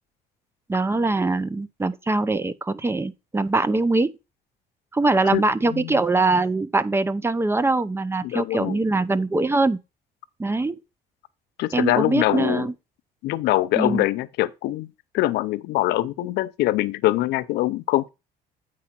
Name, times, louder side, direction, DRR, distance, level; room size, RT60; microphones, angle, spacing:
voice 1, 0.7-4.1 4.9-9.8 10.4-10.8 11.7-12.7 13.8-14.0, right 2 dB, 15° right, 0.5 m, -22 dB
voice 2, 8.2-8.8 11.6-12.7 13.2-18.1, left 16 dB, 80° left, 0.6 m, -23 dB
8.4 x 4.9 x 4.3 m
cardioid pair, 110°, 17 cm